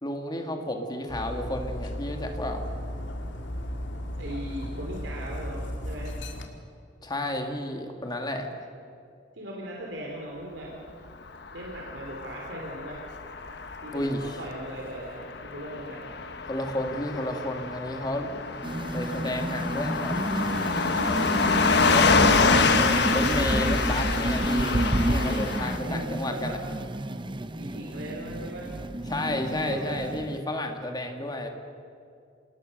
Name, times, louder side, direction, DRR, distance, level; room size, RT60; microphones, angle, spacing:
voice 1, 0.0-2.6 7.0-8.5 13.9-14.4 16.4-18.6 18.9-20.2 21.6-22.4 23.1-26.6 29.1-31.5, left 1 dB, 20° left, 4 dB, 2.1 m, -32 dB
Dog, 1.1-6.5, equal, 80° left, 2.2 m, -35 dB
voice 2, 4.2-6.1 9.3-10.7 11.5-13.0 13.8-16.1 25.8-26.6 27.5-28.7 29.1-30.0, right 1 dB, 70° right, -2 dB, 3.3 m, -38 dB
Car passing by / Truck, 11.4-25.8, left 4 dB, 60° left, 1.3 m, -26 dB
sound 1, 18.6-30.4, right 1 dB, 25° right, 0.8 m, -30 dB
28.5 x 19.0 x 6.7 m, 2.4 s
head